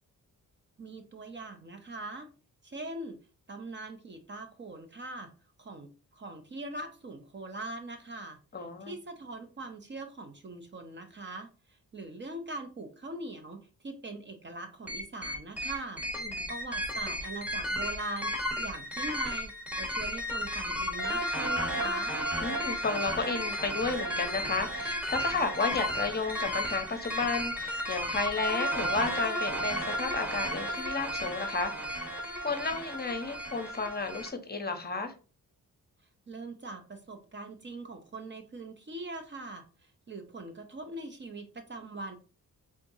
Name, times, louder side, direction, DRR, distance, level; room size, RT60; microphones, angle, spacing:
voice 1, 0.8-2.3 2.6-3.2 3.5-5.3 5.6-8.4 8.9-11.5 11.9-13.6 13.8-16.0 16.5-22.2 36.3-39.6 40.1-42.2, right 2 dB, 30° right, 6 dB, 0.7 m, -41 dB
voice 2, 8.5-9.0 16.2-16.5 22.4-31.7 32.4-35.1, left 4 dB, 30° left, 6 dB, 0.7 m, -32 dB
sound 1, 14.9-34.3, equal, 5° right, 1.2 m, -33 dB
4.4 x 3.6 x 2.6 m, 0.35 s
cardioid pair, 110°, 35 cm